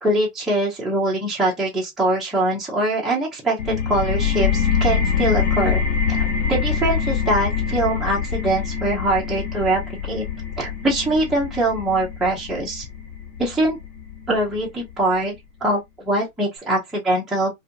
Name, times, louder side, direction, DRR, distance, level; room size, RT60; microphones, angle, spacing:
voice 1, 0.0-5.8 6.1-10.2 10.6-12.9 13.4-13.8 14.3-17.5, right 1 dB, ahead, 0.5 m, -23 dB
sound 1, 3.6-15.0, left 7 dB, 60° left, 0.8 m, -24 dB
2.5 x 2.3 x 2.4 m
hypercardioid pair, 110°, 41 cm